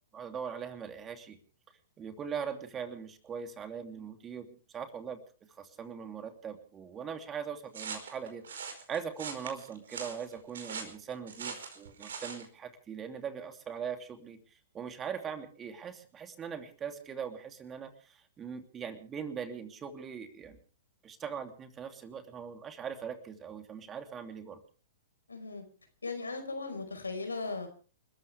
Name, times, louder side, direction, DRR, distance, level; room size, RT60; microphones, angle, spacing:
voice 1, 0.1-1.4 2.0-5.2 5.6-8.4 8.9-20.6 21.0-24.6, right 7 dB, 20° right, 7 dB, 2.8 m, -41 dB
sound 1, 7.7-12.5, right 5 dB, 70° right, 4.9 m, -42 dB
voice 2, 25.3-25.6 26.0-27.7, left 3 dB, 85° left, 6 dB, 5.0 m, -37 dB
29.5 x 14.0 x 3.5 m, 0.39 s
figure-of-eight pair, 110°, 0 cm